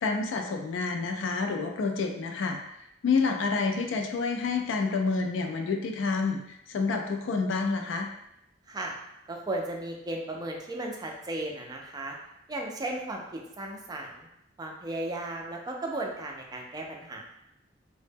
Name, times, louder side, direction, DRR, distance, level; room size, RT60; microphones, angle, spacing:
voice 1, 0.0-2.6 3.0-8.1, left 4 dB, 70° left, 4 dB, 0.3 m, -28 dB
voice 2, 9.3-12.2 12.5-14.3 14.6-17.3, right 2 dB, 20° right, 0 dB, 0.3 m, -35 dB
2.0 x 2.0 x 3.3 m, 0.83 s
head